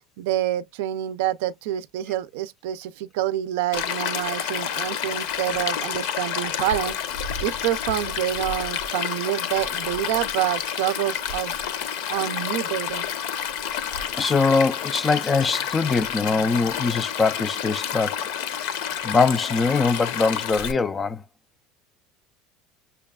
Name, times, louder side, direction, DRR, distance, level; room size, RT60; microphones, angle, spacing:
voice 1, 0.2-7.0 7.4-11.6 12.1-13.1, right 13 dB, 80° right, 0.4 m, -27 dB
Stream, 3.7-20.7, left 8 dB, 75° left, 0.8 m, -29 dB
voice 2, 14.1-18.2 18.6-18.7 19.0-21.2, left 4 dB, 15° left, 0.3 m, -22 dB
6.6 x 2.3 x 2.2 m
cardioid pair, 155°, 0 cm